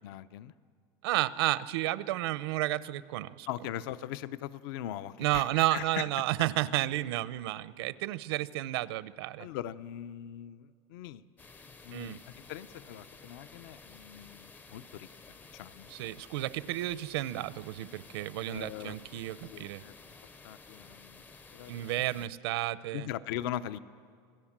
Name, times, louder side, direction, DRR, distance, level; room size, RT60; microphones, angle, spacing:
voice 1, 0.0-0.5 3.5-6.1 9.4-11.2 11.8-15.9 18.5-19.9 20.4-21.2 21.5-22.3 22.9-23.8, left 12 dB, 65° left, 15 dB, 0.7 m, -41 dB
voice 2, 1.0-3.5 5.2-9.5 11.9-12.2 15.9-19.8 21.7-23.1, right 16 dB, 85° right, 16 dB, 0.7 m, -32 dB
sound 1, 11.4-22.3, left 4 dB, 15° left, 0.6 m, -53 dB
27.0 x 18.0 x 7.4 m, 2.1 s
supercardioid pair, 170°, 13 cm